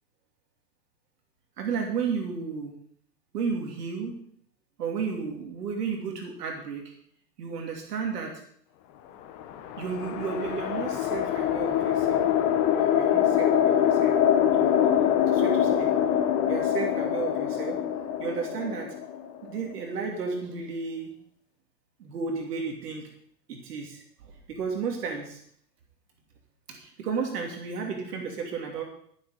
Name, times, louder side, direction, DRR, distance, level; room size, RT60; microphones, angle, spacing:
voice 1, 1.6-2.7 3.3-4.1 4.8-6.8 7.4-8.3 9.8-12.3 12.7-14.1 14.5-15.9 16.5-17.8 18.2-18.9 19.4-21.1 22.0-23.0 23.5-25.4 26.7-28.8, right 5 dB, 70° right, 1 dB, 2.8 m, -33 dB
sound 1, 9.3-19.7, left 10 dB, 40° left, 1.6 m, -24 dB
15.0 x 7.4 x 5.0 m, 0.65 s
hypercardioid pair, 115°, 48 cm